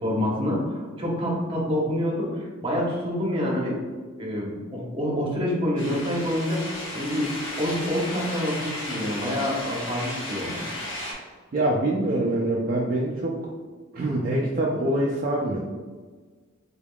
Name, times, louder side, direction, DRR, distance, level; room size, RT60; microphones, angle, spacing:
voice 1, 0.0-3.8 4.2-7.3 7.6-10.7, equal, 25° right, -3 dB, 0.9 m, -27 dB
sound 1, 5.8-11.1, left 1 dB, 65° left, 1.0 m, -34 dB
voice 2, 11.5-13.5 13.9-15.6, right 1 dB, 45° right, -3 dB, 0.4 m, -25 dB
3.6 x 3.5 x 2.3 m, 1.4 s
head